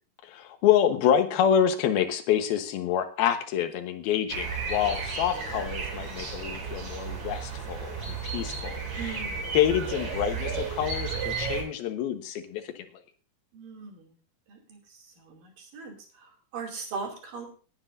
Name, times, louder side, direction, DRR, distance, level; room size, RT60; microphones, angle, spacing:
voice 1, 0.2-9.2 9.5-12.9, left 9 dB, 90° left, 7 dB, 3.0 m, -27 dB
sound 1, 4.3-11.6, right 5 dB, 50° right, 4.1 m, -33 dB
voice 2, 9.0-9.6 13.5-14.1 14.5-14.8 15.2-17.5, right 5 dB, 65° right, 1 dB, 4.3 m, -39 dB
19.0 x 9.9 x 2.6 m, 0.37 s
omnidirectional pair, 4.2 m